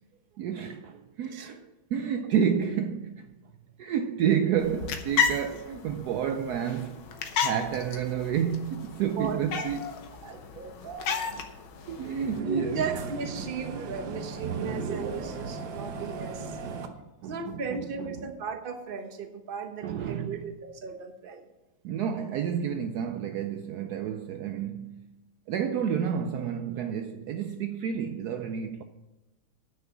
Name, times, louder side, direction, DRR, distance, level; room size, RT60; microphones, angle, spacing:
voice 1, 0.4-3.3 3.8-7.0 7.4-10.0 11.9-12.9 13.7-13.9 16.6-18.3 19.8-20.4 21.8-25.1 25.5-28.8, right 8 dB, 80° right, 0.9 m, -30 dB
sound 1, 4.6-12.4, left 6 dB, 90° left, 1.8 m, -33 dB
voice 2, 9.2-9.7 10.2-11.4 12.4-16.6 17.2-21.5, right 5 dB, 35° right, 0.9 m, -36 dB
sound 2, 11.8-16.9, right 4 dB, 60° right, 1.4 m, -36 dB
9.9 x 6.5 x 7.0 m
omnidirectional pair, 2.2 m